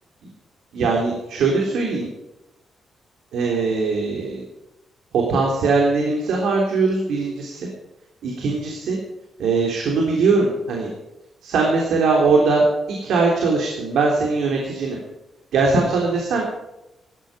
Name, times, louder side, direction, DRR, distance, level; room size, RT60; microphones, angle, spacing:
voice 1, 0.7-2.1 3.3-4.4 5.1-7.7 8.2-9.0 9.4-10.9 11.4-12.6 12.9-15.0 15.5-16.4, right 4 dB, 90° right, -1 dB, 3.5 m, -20 dB
17.5 x 13.5 x 5.1 m, 0.94 s
cardioid pair, 125°, 0 cm